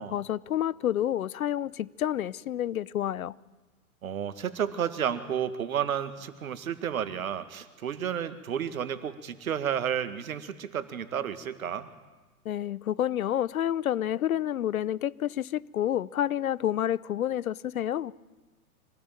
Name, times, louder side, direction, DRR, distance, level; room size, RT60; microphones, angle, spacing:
voice 1, 0.0-3.3 12.4-18.1, left 11 dB, 70° left, 0.8 m, -29 dB
voice 2, 4.0-11.9, right 8 dB, 70° right, 2.0 m, -31 dB
25.0 x 17.5 x 9.0 m
figure-of-eight pair, 110°, 44 cm